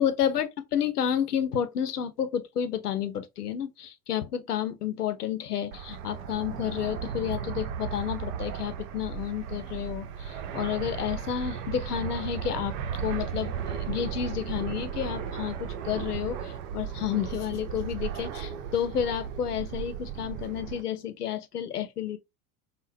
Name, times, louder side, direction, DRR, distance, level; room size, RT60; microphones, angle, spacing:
voice 1, 0.0-22.2, left 9 dB, 85° left, 0.5 m, -31 dB
Fixed-wing aircraft airplane, 5.7-20.8, right 8 dB, 60° right, 0.7 m, -35 dB
3.6 x 2.0 x 2.6 m
figure-of-eight pair, 70°, 45 cm